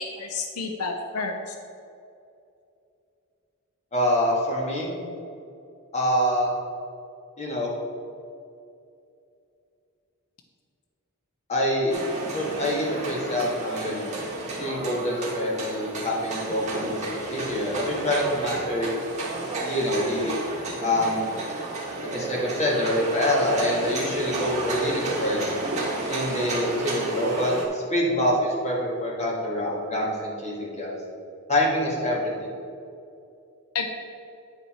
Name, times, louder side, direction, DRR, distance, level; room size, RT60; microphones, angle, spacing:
voice 1, 0.0-1.5 33.7-33.9, left 4 dB, 90° left, 4 dB, 0.7 m, -30 dB
voice 2, 3.9-4.9 5.9-6.5 7.4-7.7 11.5-12.0 12.3-14.2 14.6-18.9 19.6-20.3 20.8-21.2 22.0-25.5 26.1-31.0 31.5-32.5, left 1 dB, 30° left, -3 dB, 1.9 m, -26 dB
sound 1, 11.9-27.7, right 2 dB, 35° right, 1.6 m, -32 dB
10.0 x 5.5 x 4.3 m, 2.6 s
head